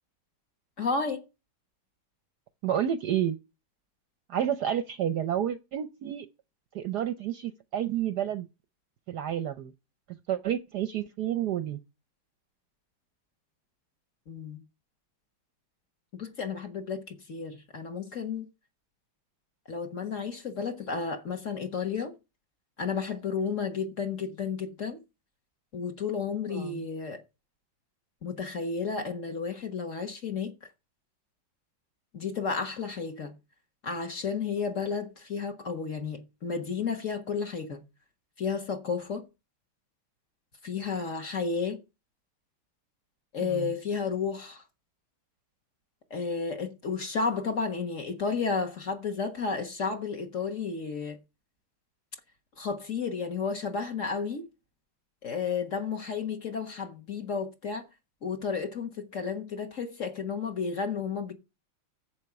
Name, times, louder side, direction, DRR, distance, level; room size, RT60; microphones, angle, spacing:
voice 1, 0.8-1.2 14.3-14.6 16.2-18.5 19.7-22.1 22.8-25.0 25.7-27.2 28.2-30.5 32.1-33.3 33.8-37.8 38.4-39.3 40.6-41.8 43.3-44.6 46.1-51.2 52.6-54.5 55.2-57.8 58.2-61.3, left 5 dB, 40° left, 1.5 m, -32 dB
voice 2, 2.6-3.4 4.3-6.3 6.7-8.5 9.1-9.7 10.1-11.8 26.5-26.8 43.5-43.7, right 10 dB, 65° right, 1.0 m, -30 dB
11.0 x 7.7 x 4.7 m
omnidirectional pair, 2.3 m